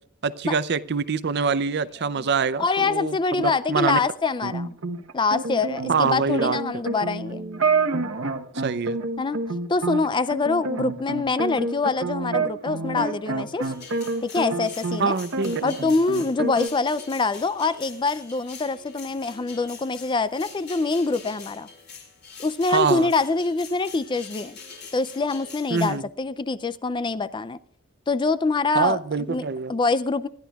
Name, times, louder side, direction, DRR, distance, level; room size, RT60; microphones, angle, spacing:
voice 1, 0.2-4.0 4.4-4.5 5.9-6.6 8.6-9.0 15.0-15.7 22.7-23.1 25.7-26.0 28.7-29.7, right 5 dB, 50° right, 16 dB, 0.5 m, -25 dB
voice 2, 2.6-4.7 5.1-7.5 9.2-9.4 9.7-13.7 14.2-15.1 15.6-21.7 22.4-24.6 24.9-27.6 28.1-30.3, left 3 dB, 20° left, 15 dB, 0.4 m, -25 dB
sound 1, 4.5-15.0 15.3-16.7, right 3 dB, 70° right, 1.1 m, -28 dB
sound 2, 13.6-25.9, left 5 dB, 50° left, 4.9 m, -44 dB
26.5 x 11.0 x 2.4 m, 0.63 s
head